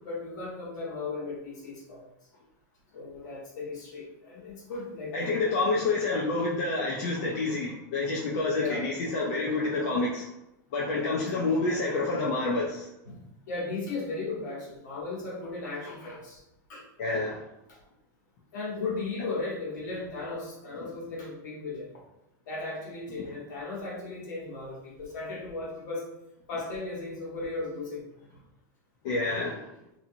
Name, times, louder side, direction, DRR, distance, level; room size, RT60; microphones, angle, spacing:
voice 1, 0.0-2.0 2.9-5.1 8.5-8.9 11.2-11.5 13.0-16.4 16.7-16.9 17.7-17.8 18.5-21.9 22.4-26.1 26.5-28.4, left 3 dB, 75° left, -4 dB, 1.3 m, -36 dB
voice 2, 5.1-10.3 10.7-12.9 17.0-17.4 20.8-20.9 23.2-23.3 29.0-29.7, left 3 dB, 50° left, -4 dB, 0.5 m, -28 dB
2.7 x 2.6 x 2.7 m, 0.86 s
supercardioid pair, 180°, 10 cm